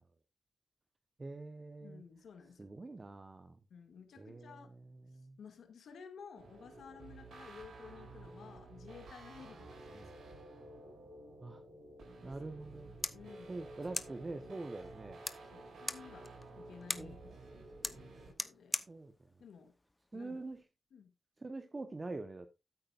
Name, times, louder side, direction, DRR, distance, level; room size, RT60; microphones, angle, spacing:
voice 1, 1.2-2.0 2.6-3.6 4.2-4.6 5.1-5.4 9.9-10.1 11.4-11.6 12.2-13.0 13.5-15.2 17.0-17.2 18.9-19.1 20.1-20.6 21.4-22.5, right 2 dB, 30° right, 1.0 m, -44 dB
voice 2, 1.8-2.7 3.7-4.7 5.4-10.4 13.1-13.6 15.5-18.9 19.4-19.7 20.1-20.5 20.9-21.1, left 6 dB, 85° left, 2.2 m, -54 dB
sound 1, 6.4-18.3, right 2 dB, 85° right, 6.2 m, -52 dB
sound 2, 12.6-20.6, left 2 dB, 20° left, 0.9 m, -45 dB
13.5 x 8.8 x 2.5 m
cardioid pair, 80°, 0 cm